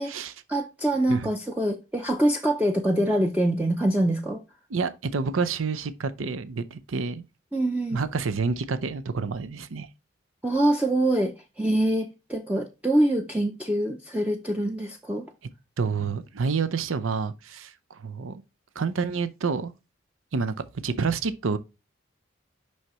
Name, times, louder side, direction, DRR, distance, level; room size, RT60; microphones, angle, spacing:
voice 1, 0.5-4.4 7.5-8.0 10.4-15.3, right 1 dB, 5° right, 0.5 m, -25 dB
voice 2, 4.7-7.2 7.9-9.9 15.8-18.4 18.8-19.7 20.3-21.6, right 5 dB, 90° right, 0.6 m, -28 dB
6.3 x 5.6 x 3.0 m
head